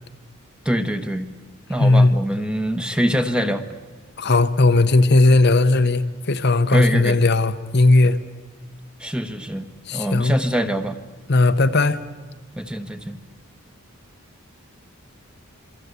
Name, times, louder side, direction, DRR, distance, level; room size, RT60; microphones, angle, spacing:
voice 1, 0.6-1.3 1.7-3.6 6.7-7.2 9.0-11.0 12.6-13.2, equal, 5° right, 1.3 m, -24 dB
voice 2, 1.8-2.1 4.2-8.2 9.9-10.3 11.3-12.0, left 2 dB, 50° left, 0.9 m, -17 dB
27.0 x 24.5 x 8.3 m
head